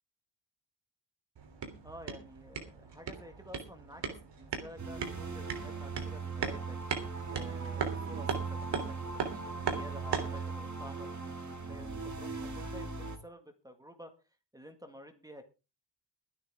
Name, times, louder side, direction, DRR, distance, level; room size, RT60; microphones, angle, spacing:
sound 1, 1.4-10.4, right 6 dB, 80° right, 3.4 m, -39 dB
voice 1, 1.8-6.8 7.3-8.3 8.6-14.1 14.5-15.4, equal, 10° right, 6 dB, 1.8 m, -51 dB
sound 2, 4.8-13.2, right 4 dB, 40° right, 2.5 m, -39 dB
23.0 x 9.3 x 3.6 m, 0.31 s
wide cardioid pair, 160°, 42 cm